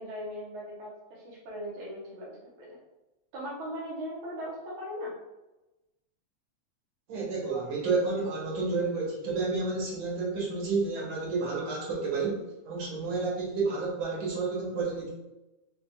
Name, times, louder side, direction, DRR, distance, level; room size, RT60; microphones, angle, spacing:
voice 1, 0.0-2.8 3.3-5.2, equal, 80° right, -5 dB, 1.1 m, -39 dB
voice 2, 7.1-15.1, right 3 dB, 55° right, -4 dB, 1.5 m, -30 dB
4.2 x 3.3 x 2.7 m, 1.0 s
omnidirectional pair, 3.4 m